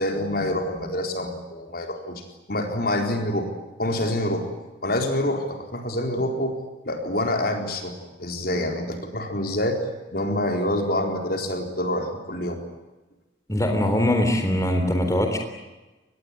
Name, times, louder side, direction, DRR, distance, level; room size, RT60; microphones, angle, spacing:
voice 1, 0.0-2.2 2.5-3.5 3.8-4.5 4.8-6.6 6.8-9.8 10.1-12.6, left 1 dB, 50° left, 4 dB, 4.2 m, -26 dB
voice 2, 13.5-15.4, left 1 dB, 15° left, 4 dB, 3.7 m, -22 dB
25.0 x 20.5 x 9.9 m, 1.1 s
head